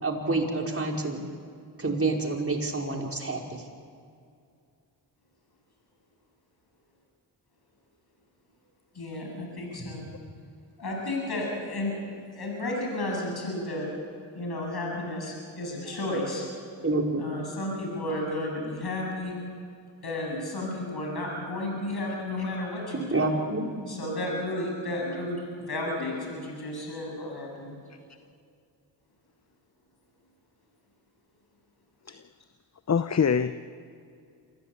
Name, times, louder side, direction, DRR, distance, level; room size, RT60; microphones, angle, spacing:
voice 1, 0.0-1.2 1.8-3.6 16.8-17.2 22.9-23.7, right 2 dB, 30° right, 0 dB, 5.0 m, -28 dB
voice 2, 8.9-10.1 10.8-12.0 12.3-13.9 14.3-16.5 17.1-19.3 20.0-23.3 23.9-27.8, left 1 dB, 55° left, 0 dB, 7.9 m, -32 dB
voice 3, 26.0-26.6 32.1-32.2 32.9-33.5, left 6 dB, 35° left, 11 dB, 0.8 m, -26 dB
26.0 x 15.5 x 8.8 m, 2.4 s
cardioid pair, 50°, 44 cm